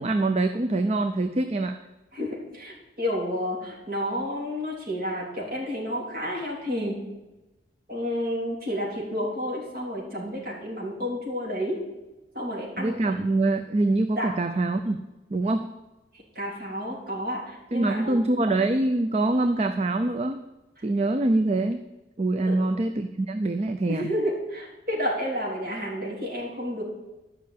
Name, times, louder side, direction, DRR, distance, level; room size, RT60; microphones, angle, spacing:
voice 1, 0.0-1.8 12.8-15.0 15.3-15.7 17.7-20.4 20.8-21.8 22.2-24.1, right 2 dB, 35° right, 8 dB, 0.5 m, -24 dB
voice 2, 2.1-7.0 7.9-11.8 12.3-13.0 14.2-14.3 16.1-18.3 22.4-22.6 23.9-26.8, equal, 50° right, -3 dB, 3.4 m, -30 dB
11.5 x 5.7 x 8.4 m, 1.0 s
head